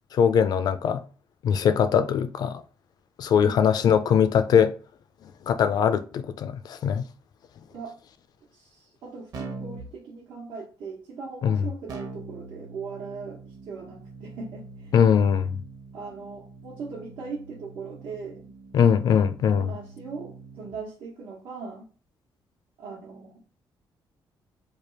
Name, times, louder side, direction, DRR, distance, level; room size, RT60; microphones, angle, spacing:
voice 1, 0.1-1.0 1.4-2.6 3.2-4.7 5.5-7.1 11.4-11.6 14.9-15.6 18.7-19.7, left 7 dB, 55° left, 0.4 m, -21 dB
voice 2, 3.3-3.6 7.7-8.0 8.5-14.9 15.9-18.5 19.6-21.9 22.8-23.6, right 4 dB, 85° right, 1.1 m, -39 dB
Keyboard (musical), 9.3-9.9 11.9-20.8, right 3 dB, 50° right, 0.9 m, -43 dB
3.3 x 2.4 x 4.3 m
cardioid pair, 170°, 8 cm